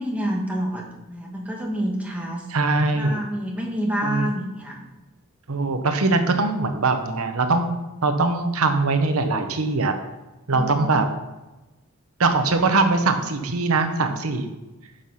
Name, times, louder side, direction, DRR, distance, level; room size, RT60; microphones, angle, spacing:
voice 1, 0.0-2.4 2.9-4.8 10.5-11.0, equal, 5° right, -1 dB, 1.7 m, -28 dB
voice 2, 2.5-3.2 4.0-4.3 5.5-7.7 8.0-10.0 10.5-11.1 12.2-14.5, right 3 dB, 75° right, 7 dB, 0.9 m, -21 dB
10.0 x 5.7 x 5.7 m, 1.1 s
head